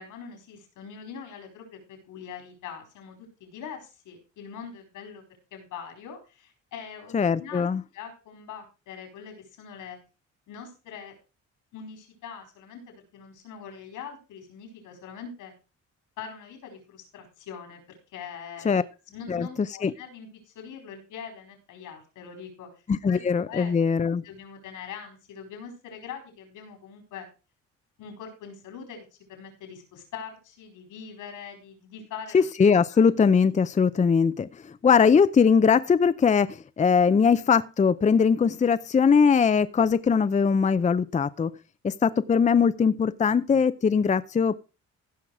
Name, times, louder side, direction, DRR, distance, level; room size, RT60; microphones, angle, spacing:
voice 1, 0.0-5.2 5.5-7.7 7.9-10.0 10.5-11.2 11.7-15.5 16.2-17.8 18.1-18.8 19.1-22.7 23.1-23.7 24.2-27.3 28.0-32.5 32.9-33.1, left 7 dB, 90° left, 4 dB, 4.8 m, -42 dB
voice 2, 7.1-7.8 18.6-18.8 19.3-19.9 22.9-24.2 32.3-41.5 41.8-44.6, left 6 dB, 25° left, 13 dB, 0.6 m, -21 dB
16.0 x 5.8 x 4.8 m, 0.31 s
cardioid pair, 90°, 30 cm